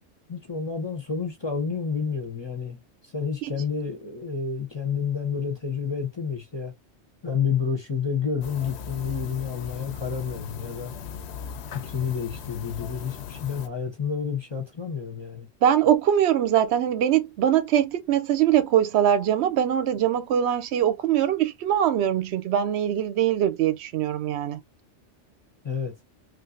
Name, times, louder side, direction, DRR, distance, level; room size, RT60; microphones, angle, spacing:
voice 1, 0.3-6.7 7.2-11.0 11.8-15.5 25.6-25.9, left 6 dB, 30° left, 0.5 m, -29 dB
sound 1, 8.4-13.7, left 7 dB, 70° left, 0.8 m, -38 dB
voice 2, 15.6-24.6, right 10 dB, 70° right, 0.8 m, -22 dB
3.3 x 2.5 x 2.5 m
omnidirectional pair, 1.2 m